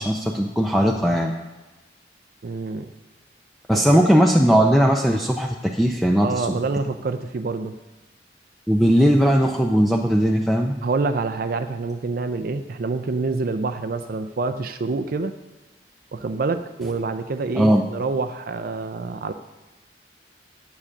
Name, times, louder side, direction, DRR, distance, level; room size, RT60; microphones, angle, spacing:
voice 1, 0.0-1.3 3.7-6.5 8.7-10.7 17.5-17.8, equal, ahead, 0 dB, 0.5 m, -18 dB
voice 2, 2.4-2.9 3.7-4.0 6.2-7.8 10.8-15.3 16.1-19.3, right 3 dB, 55° right, 9 dB, 0.4 m, -27 dB
8.5 x 7.4 x 6.4 m, 1.2 s
head